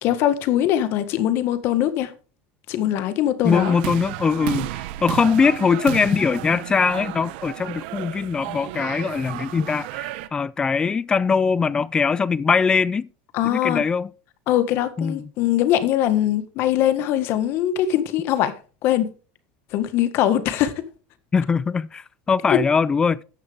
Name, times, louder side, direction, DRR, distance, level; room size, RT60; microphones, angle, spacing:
voice 1, 0.0-2.1 2.7-3.8 13.3-13.8 14.5-18.6 18.8-19.1 19.7-20.7 22.5-22.6, left 12 dB, 45° left, 1.6 m, -21 dB
voice 2, 3.4-13.1 13.4-14.1 15.0-15.3 21.3-23.2, left 5 dB, 15° left, 0.4 m, -21 dB
sound 1, 3.4-10.3, right 15 dB, 65° right, 1.1 m, -32 dB
14.0 x 10.0 x 3.5 m
cardioid pair, 170°, 6 cm